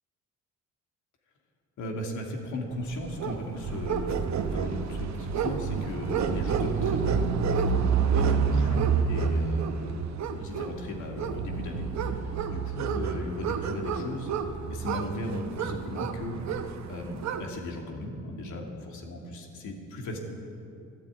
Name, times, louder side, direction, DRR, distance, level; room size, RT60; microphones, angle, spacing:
voice 1, 1.8-7.4 7.8-14.3 14.7-16.4 16.9-20.2, left 1 dB, 75° left, 0 dB, 2.6 m, -36 dB
sound 1, 2.9-17.5, right 6 dB, 65° right, 1.0 m, -29 dB
13.0 x 11.5 x 8.8 m, 2.7 s
cardioid pair, 90°, 30 cm